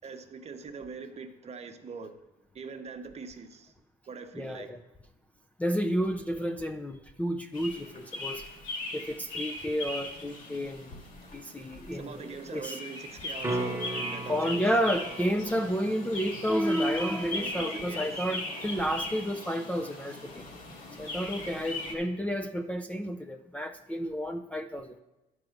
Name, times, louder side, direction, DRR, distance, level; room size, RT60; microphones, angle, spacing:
voice 1, 0.0-2.1 2.5-3.7 4.1-4.7 11.9-14.6 17.3-18.1, right 5 dB, 40° right, 7 dB, 0.9 m, -42 dB
voice 2, 4.4-4.8 5.6-8.4 8.9-11.0 11.3-12.8 14.3-20.5 21.0-24.9, equal, 10° left, 5 dB, 0.4 m, -31 dB
sound 1, 7.5-21.9, left 2 dB, 50° left, 2.0 m, -39 dB
sound 2, 13.4-19.5 24.1-24.2, right 2 dB, 15° right, 1.2 m, -39 dB
10.5 x 4.8 x 6.5 m, 1.0 s
cardioid pair, 110°, 17 cm